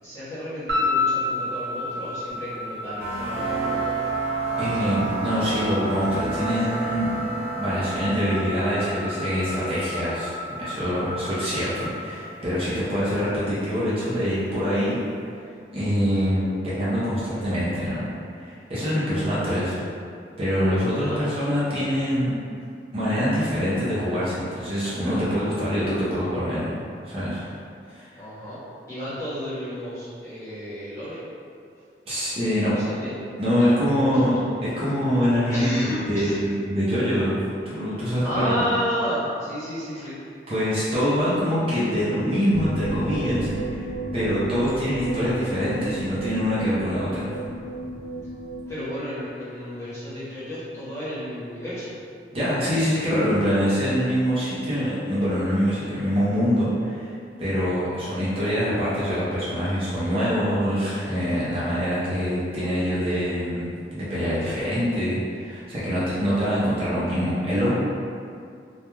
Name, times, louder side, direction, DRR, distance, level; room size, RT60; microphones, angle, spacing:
voice 1, 0.0-3.9 4.8-5.0 20.9-21.2 28.2-28.6 28.9-31.2 32.7-33.1 33.5-33.9 34.2-34.3 35.5-36.4 38.2-40.2 48.7-52.0, equal, 15° left, -12 dB, 0.9 m, -32 dB
sound 1, 0.7-13.0, left 2 dB, 80° right, 0.7 m, -32 dB
sound 2, 3.0-11.6, right 4 dB, 10° right, 1.0 m, -31 dB
voice 2, 4.6-7.1 7.6-15.0 15.7-18.1 18.4-19.8 20.4-22.3 22.9-26.7 27.1-27.5 27.9-28.1 32.1-32.8 33.4-37.4 37.6-38.7 40.0-40.1 40.5-43.8 44.1-47.4 52.3-57.1 57.4-67.8, equal, 35° right, -10 dB, 0.6 m, -24 dB
sound 3, 42.5-48.8, right 1 dB, 75° left, 0.7 m, -33 dB
2.3 x 2.2 x 3.0 m, 2.4 s
head